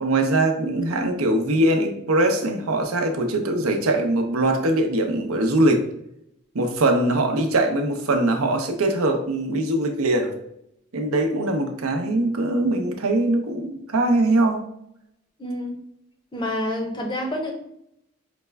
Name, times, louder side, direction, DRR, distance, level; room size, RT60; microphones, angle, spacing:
voice 1, 0.0-5.9 6.5-10.3 10.9-14.6, right 1 dB, 80° right, 4 dB, 0.6 m, -22 dB
voice 2, 15.4-15.8 16.3-17.5, left 1 dB, 20° left, 2 dB, 0.6 m, -28 dB
5.0 x 2.2 x 3.3 m, 0.76 s
head